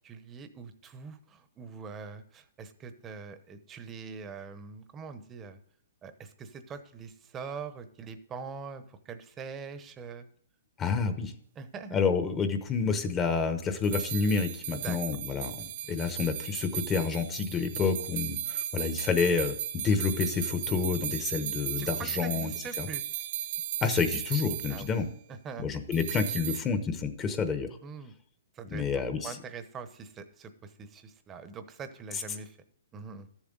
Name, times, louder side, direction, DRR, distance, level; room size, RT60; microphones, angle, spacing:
voice 1, 0.0-5.6 6.0-10.3 11.6-12.0 14.7-15.0 21.8-23.0 24.7-24.9 25.3-25.7 27.8-28.1 28.5-28.8 29.2-32.6 32.9-33.3, right 5 dB, 20° right, 10 dB, 0.9 m, -43 dB
voice 2, 10.8-11.3 11.9-22.9 23.8-25.1 25.6-27.7 28.7-29.4, left 5 dB, 20° left, 8 dB, 0.9 m, -29 dB
sound 1, 13.8-24.9 25.9-26.6, right 10 dB, 45° right, 0.5 m, -36 dB
12.5 x 7.3 x 3.9 m, 0.66 s
hypercardioid pair, 145°, 0 cm